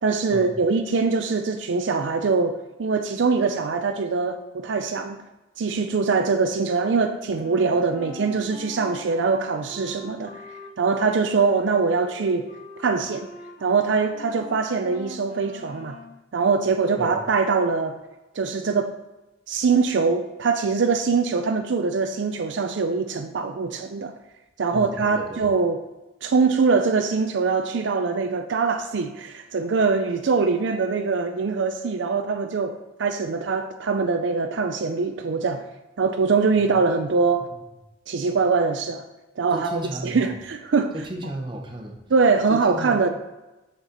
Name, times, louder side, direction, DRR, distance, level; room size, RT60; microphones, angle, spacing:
voice 1, 0.0-5.2 5.6-12.5 12.8-13.3 13.6-16.0 16.3-18.0 18.4-18.9 19.5-24.1 24.6-25.8 26.2-35.7 36.0-37.5 38.1-39.0 39.4-40.9 42.1-43.1, right 4 dB, 65° right, 7 dB, 0.4 m, -23 dB
Wind instrument woodwind instrument, 7.3-16.2, left 1 dB, 35° left, 2.2 m, -43 dB
voice 2, 24.7-25.5 39.5-40.3 40.9-42.0 42.7-43.1, right 1 dB, 25° right, 1 dB, 0.9 m, -34 dB
7.1 x 4.3 x 5.1 m, 1.0 s
head